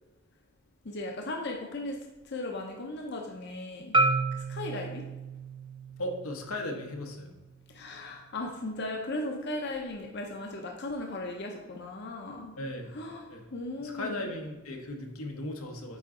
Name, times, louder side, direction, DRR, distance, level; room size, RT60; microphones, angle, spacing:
voice 1, 0.8-2.0 2.2-4.0 4.3-5.1 7.7-12.5 12.9-14.3, left 2 dB, 55° left, 1 dB, 0.7 m, -37 dB
Marimba xylophone, 3.9-8.1, right 2 dB, 20° right, 0.4 m, -32 dB
voice 2, 6.0-7.3 12.6-13.0 13.3-13.4 13.8-16.0, left 1 dB, 85° left, 3 dB, 1.0 m, -37 dB
9.1 x 3.9 x 3.8 m, 1.1 s
head